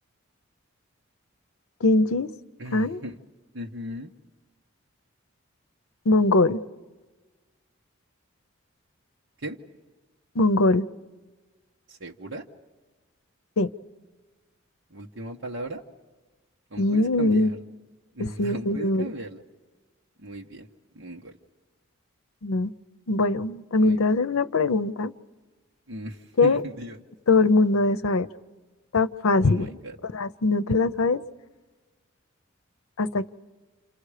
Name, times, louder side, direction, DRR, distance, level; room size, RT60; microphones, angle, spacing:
voice 1, 1.8-2.3 2.7-3.0 6.1-6.6 10.4-10.9 13.6-13.7 16.8-17.5 18.2-19.1 22.4-22.7 23.1-25.1 26.4-26.6 27.3-28.3 28.9-29.8 30.0-31.2 33.0-33.3, left 2 dB, 90° left, 13 dB, 0.7 m, -22 dB
voice 2, 2.6-3.2 3.5-4.1 9.4-9.6 11.9-12.5 14.9-15.8 16.7-17.6 18.1-19.4 20.2-20.7 20.9-21.4 23.8-24.0 25.9-27.0 29.4-30.0, right 1 dB, 60° right, 0 dB, 1.2 m, -37 dB
29.5 x 27.5 x 5.0 m, 1.3 s
head